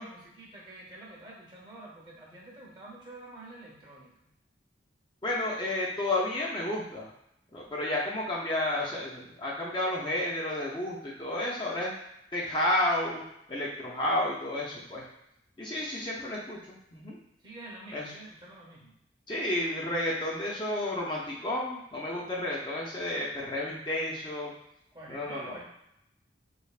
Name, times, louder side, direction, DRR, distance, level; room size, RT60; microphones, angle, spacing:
voice 1, 0.0-4.3 15.8-15.9 17.4-19.0 24.9-25.6, right 2 dB, 25° right, -3 dB, 0.7 m, -47 dB
voice 2, 5.2-7.1 7.5-11.9 12.3-13.2 13.5-15.0 15.6-16.6 16.9-17.2 17.9-18.1 19.3-24.5 25.1-25.5, left 1 dB, 25° left, -4 dB, 0.5 m, -31 dB
3.6 x 3.3 x 2.4 m, 0.79 s
head